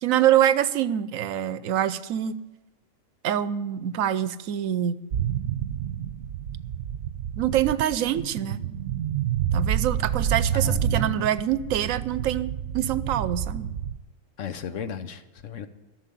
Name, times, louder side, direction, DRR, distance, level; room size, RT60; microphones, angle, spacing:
voice 1, 0.0-2.4 3.2-5.0 7.4-8.6 9.5-13.7, right 11 dB, 90° right, 15 dB, 1.1 m, -25 dB
sound 1, 5.1-14.0, right 9 dB, 70° right, 0.9 m, -29 dB
voice 2, 10.5-11.2 14.4-15.7, left 8 dB, 70° left, 10 dB, 1.2 m, -35 dB
13.0 x 6.8 x 10.0 m, 1.0 s
omnidirectional pair, 1.4 m